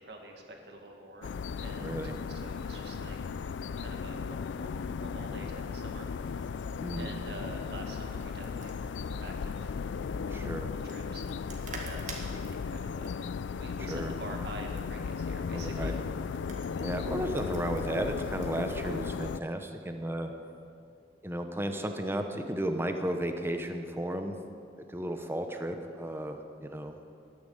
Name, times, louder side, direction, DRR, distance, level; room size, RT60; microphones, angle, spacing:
voice 1, 0.0-3.2 3.8-6.6 6.9-13.2 13.6-16.0, right 1 dB, 65° right, 2 dB, 2.0 m, -47 dB
sound 1, 1.2-19.4, left 5 dB, 90° left, 0.4 m, -36 dB
voice 2, 1.8-2.1 6.8-7.1 10.3-10.7 13.9-14.1 15.5-15.9 16.8-20.3 21.2-24.3 24.8-27.0, right 1 dB, 15° right, 6 dB, 0.9 m, -34 dB
sound 2, 7.9-19.1, right 3 dB, 45° right, 2.0 m, -50 dB
13.5 x 10.5 x 8.0 m, 2.4 s
head